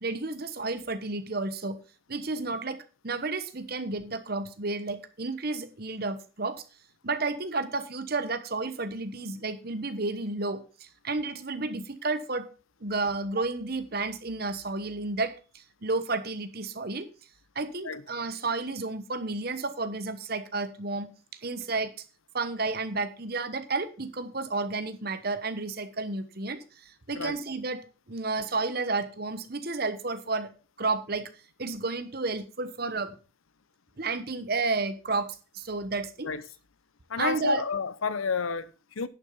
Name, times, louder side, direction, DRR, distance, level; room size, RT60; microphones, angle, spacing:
voice 1, 0.0-1.8 2.1-6.6 7.0-12.5 12.8-17.1 17.5-21.1 21.4-21.9 22.3-30.5 30.8-31.3 31.6-33.2 34.0-36.3 37.2-37.6, right 3 dB, 50° right, 1.1 m, -31 dB
voice 2, 37.1-39.1, left 5 dB, 90° left, 0.8 m, -30 dB
10.5 x 6.3 x 5.5 m
head